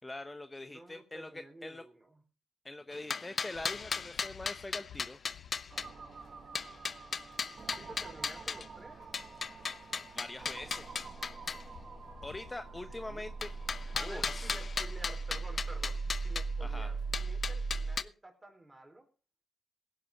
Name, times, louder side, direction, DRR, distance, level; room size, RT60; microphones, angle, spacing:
voice 1, 0.0-1.8 2.6-5.2 10.1-10.9 12.2-13.5 14.0-14.6 16.6-16.9, left 2 dB, 20° left, 9 dB, 0.9 m, -43 dB
voice 2, 0.7-2.2 7.7-9.0 12.9-13.3 13.9-19.1, right 2 dB, 20° right, 4 dB, 4.6 m, -51 dB
sound 1, 2.9-5.9 6.5-8.7 9.1-11.6 13.4-16.4 17.1-18.0, left 5 dB, 50° left, 0.7 m, -36 dB
sound 2, 3.5-17.8, left 10 dB, 80° left, 0.9 m, -58 dB
sound 3, 5.7-18.0, right 4 dB, 50° right, 1.9 m, -41 dB
17.5 x 10.0 x 3.9 m, 0.34 s
cardioid pair, 70°, 0 cm